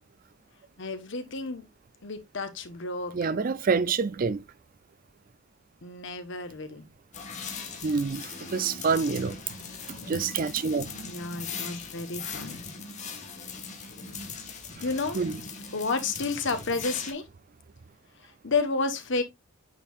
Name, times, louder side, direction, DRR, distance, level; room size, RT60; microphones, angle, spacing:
voice 1, 0.8-1.6 2.0-3.3 5.8-6.8 11.0-12.6 14.8-15.2 15.7-17.2 18.4-19.2, left 3 dB, 60° left, 1.2 m, -31 dB
voice 2, 3.1-4.4 7.8-9.4 10.1-10.9 15.1-15.4, right 5 dB, 40° right, 0.4 m, -27 dB
sound 1, 7.1-17.1, left 5 dB, 35° left, 1.4 m, -40 dB
8.8 x 4.6 x 2.4 m
head